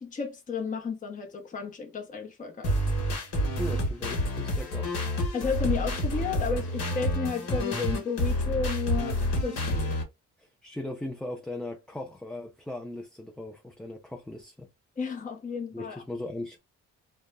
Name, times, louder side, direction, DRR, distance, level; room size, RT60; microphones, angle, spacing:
voice 1, 0.0-2.8 5.3-9.9 15.0-16.0, left 5 dB, 25° left, 0.7 m, -33 dB
sound 1, 2.6-10.0, equal, 55° left, 1.1 m, -28 dB
voice 2, 3.6-4.9 10.4-14.7 15.7-16.6, left 1 dB, 5° left, 0.4 m, -38 dB
2.2 x 2.0 x 3.3 m
cardioid pair, 90°, 30 cm